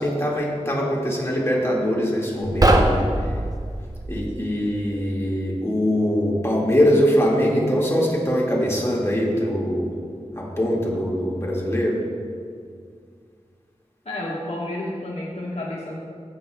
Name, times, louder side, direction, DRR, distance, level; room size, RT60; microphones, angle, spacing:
voice 1, 0.0-3.1 4.1-9.9 10.4-12.0, equal, 20° left, -4 dB, 1.9 m, -22 dB
sound 1, 2.4-4.1, right 1 dB, 30° right, 0.8 m, -20 dB
voice 2, 14.0-16.0, left 1 dB, 65° left, -4 dB, 1.4 m, -30 dB
16.0 x 6.7 x 2.3 m, 2.1 s
wide cardioid pair, 55°, 12 cm